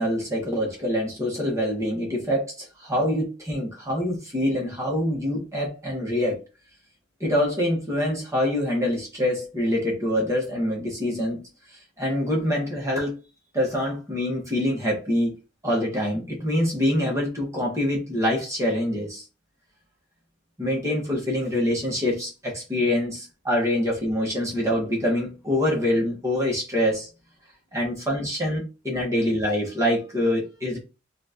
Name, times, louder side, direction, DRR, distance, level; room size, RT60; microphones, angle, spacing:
voice 1, 0.0-6.4 7.2-13.2 13.5-15.4 15.6-19.2 20.6-27.1 27.7-30.8, left 1 dB, 15° right, 1.5 m, -25 dB
5.7 x 2.7 x 2.9 m
head